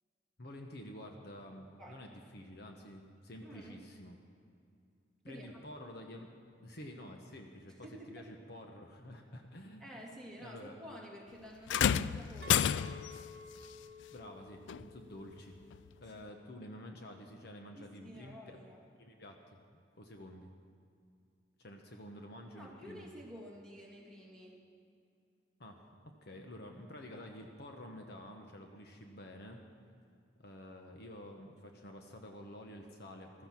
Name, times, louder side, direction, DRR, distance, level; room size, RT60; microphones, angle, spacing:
voice 1, 0.4-4.2 5.2-6.3 6.6-9.9 10.4-10.7 14.1-15.6 16.0-18.6 19.0-19.4 19.7-20.5 21.6-23.1 25.6-25.8 26.2-29.6 30.4-33.5, left 1 dB, 55° left, 3 dB, 1.2 m, -50 dB
voice 2, 3.4-3.8 5.3-5.5 7.8-8.3 9.8-12.7 17.7-18.8 22.5-24.6, equal, 5° left, -4 dB, 2.6 m, -50 dB
sound 1, 11.7-13.2 14.7-14.8 15.7-15.8, left 9 dB, 70° left, 0.3 m, -30 dB
Chink clink, 12.4-17.6, left 3 dB, 60° right, 0.8 m, -54 dB
16.0 x 13.5 x 6.1 m, 2.4 s
head